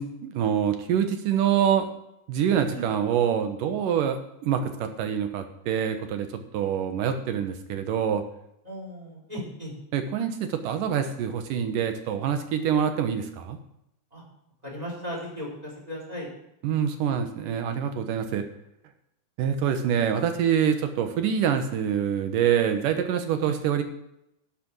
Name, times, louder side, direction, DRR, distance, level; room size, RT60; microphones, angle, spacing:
voice 1, 0.0-1.9 2.3-6.3 6.5-8.2 9.9-13.6 16.6-18.4 19.4-23.8, right 8 dB, 80° right, 7 dB, 2.7 m, -25 dB
voice 2, 8.6-9.7 14.1-14.2 14.6-16.3 23.4-23.6, equal, 10° right, -2 dB, 4.3 m, -36 dB
11.5 x 8.5 x 6.1 m, 0.81 s
omnidirectional pair, 3.7 m